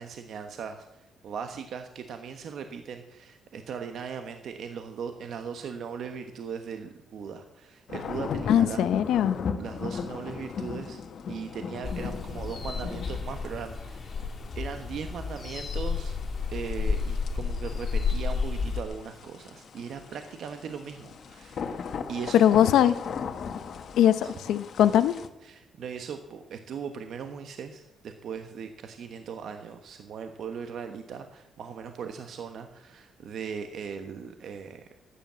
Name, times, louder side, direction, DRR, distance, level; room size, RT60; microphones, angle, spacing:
voice 1, 0.0-8.9 9.6-11.0 11.3-16.2 16.5-21.8 22.1-22.4 24.2-24.3 25.4-34.9, right 6 dB, 65° right, 7 dB, 1.1 m, -39 dB
sound 1, 7.9-25.3, left 6 dB, 60° left, 1.3 m, -38 dB
voice 2, 8.5-9.4 22.3-23.0 24.0-25.2, left 10 dB, 80° left, 12 dB, 0.7 m, -21 dB
sound 2, 11.8-18.8, left 5 dB, 40° left, 2.7 m, -31 dB
13.0 x 10.0 x 7.3 m, 0.96 s
cardioid pair, 90°, 0 cm